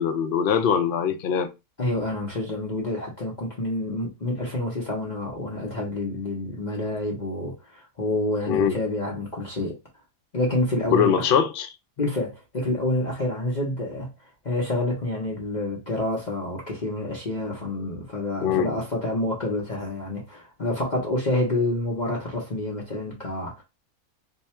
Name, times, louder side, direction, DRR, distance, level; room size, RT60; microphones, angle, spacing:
voice 1, 0.0-1.5 8.5-8.8 10.9-11.7 18.4-18.7, left 7 dB, 60° left, 0.6 m, -22 dB
voice 2, 1.8-9.8 10.3-11.2 12.0-14.1 14.4-23.6, left 1 dB, 35° left, 0.8 m, -28 dB
2.8 x 2.3 x 4.2 m
omnidirectional pair, 1.5 m